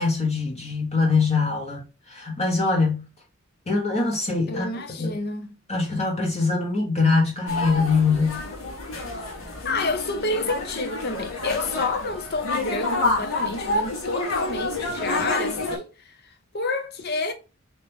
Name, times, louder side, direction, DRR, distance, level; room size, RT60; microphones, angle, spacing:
voice 1, 0.0-1.8 2.1-3.1 3.7-4.7 5.0-5.2 5.7-8.4 14.9-15.1, left 4 dB, 30° left, 1.1 m, -23 dB
voice 2, 4.5-5.6 9.6-16.1 16.5-17.3, left 3 dB, 50° left, 0.7 m, -29 dB
sound 1, 7.5-15.8, left 2 dB, 70° left, 1.5 m, -28 dB
4.1 x 3.0 x 3.4 m
head